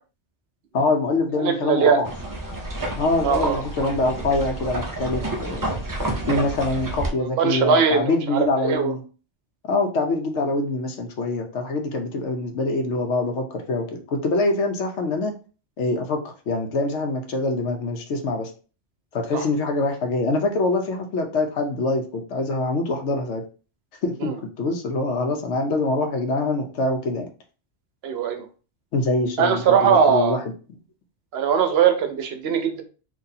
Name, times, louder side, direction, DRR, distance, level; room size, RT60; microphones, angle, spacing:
voice 1, 0.7-2.1 2.9-5.8 6.3-9.0 9.7-15.3 15.8-18.5 19.1-23.4 24.0-24.3 24.6-27.3 28.9-30.5, left 2 dB, 85° left, 4 dB, 1.0 m, -24 dB
voice 2, 1.4-2.0 3.2-3.6 6.3-6.4 7.2-8.9 19.3-19.4 24.2-24.3 28.0-28.4 29.4-30.4 31.3-32.8, right 6 dB, 70° right, 6 dB, 0.8 m, -20 dB
sound 1, 2.1-7.1, right 1 dB, 35° right, 0.3 m, -29 dB
3.9 x 2.7 x 2.7 m, 0.37 s
omnidirectional pair, 1.2 m